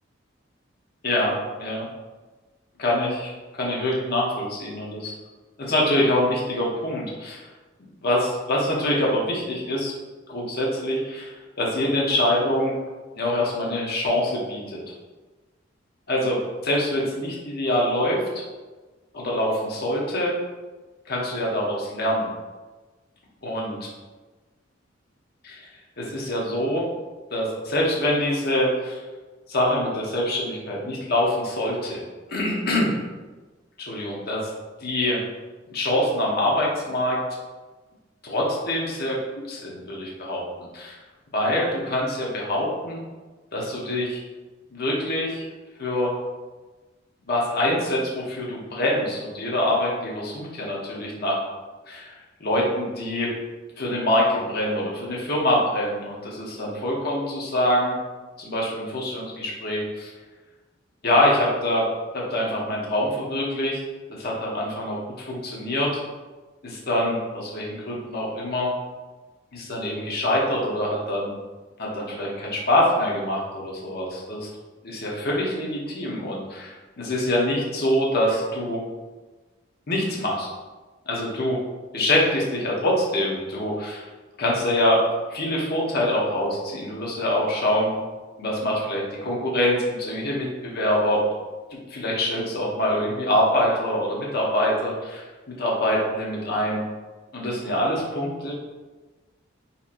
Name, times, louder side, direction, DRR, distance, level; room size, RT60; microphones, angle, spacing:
voice 1, 1.0-1.9 2.8-3.3 3.6-5.1 5.6-7.4 8.0-9.9 10.3-12.7 13.2-14.8 16.1-16.4 16.6-18.2 19.1-20.3 21.1-22.3 23.4-23.8 25.4-25.7 26.0-26.8 27.3-29.0 29.5-32.0 32.3-33.0 33.8-34.5 34.8-35.2 35.7-37.2 38.2-39.2 39.5-40.4 40.7-41.0 41.3-43.0 43.5-44.2 44.7-45.5 45.8-46.1 47.3-51.4 51.9-52.1 52.4-53.3 53.8-58.0 58.4-60.1 61.0-61.9 62.1-63.8 64.1-65.9 66.6-68.7 69.5-71.3 71.8-74.5 74.8-78.8 79.9-80.5 81.1-81.6 81.9-84.1 84.4-85.0 85.3-87.9 88.4-91.2 91.9-95.3 95.6-96.8 97.3-98.5, left 1 dB, 55° left, -3 dB, 0.9 m, -25 dB
4.2 x 2.8 x 2.5 m, 1.2 s
head